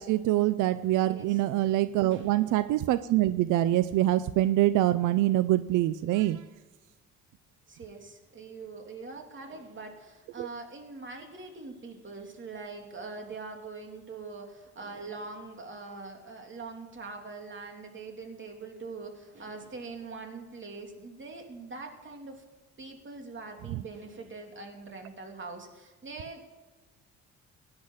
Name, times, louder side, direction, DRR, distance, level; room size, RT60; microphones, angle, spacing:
voice 1, 0.0-6.4 10.4-10.5 23.7-23.8, right 15 dB, 90° right, 15 dB, 0.5 m, -25 dB
voice 2, 1.0-1.4 2.1-2.5 7.7-22.4 22.8-26.4, right 3 dB, 40° right, 3 dB, 3.2 m, -43 dB
17.0 x 10.5 x 5.6 m, 1.2 s
cardioid pair, 90°, 30 cm